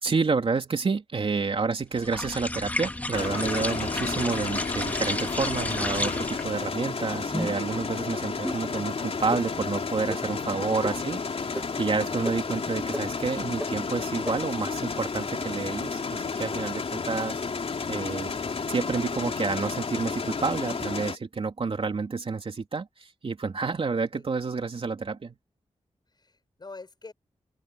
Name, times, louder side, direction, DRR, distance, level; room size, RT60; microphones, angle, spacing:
voice 1, 0.0-11.2 11.4-17.4 17.9-18.3 18.7-25.4, right 4 dB, 50° right, 3.2 m, -29 dB
sound 1, 2.0-6.6, left 1 dB, 15° left, 1.6 m, -32 dB
sound 2, 3.1-21.2, left 5 dB, 55° left, 3.8 m, -32 dB
sound 3, 7.3-7.7 8.4-8.6 9.3-9.4 10.1-10.2 10.8-10.9 11.5-11.6 12.2-12.3 12.9-13.0 13.6-13.7 14.2-14.3, equal, 5° right, 1.6 m, -32 dB
voice 2, 10.6-11.2 12.0-12.3 24.1-24.2 26.1-27.1, left 3 dB, 35° left, 6.6 m, -45 dB
wide cardioid pair, 130°, 12 cm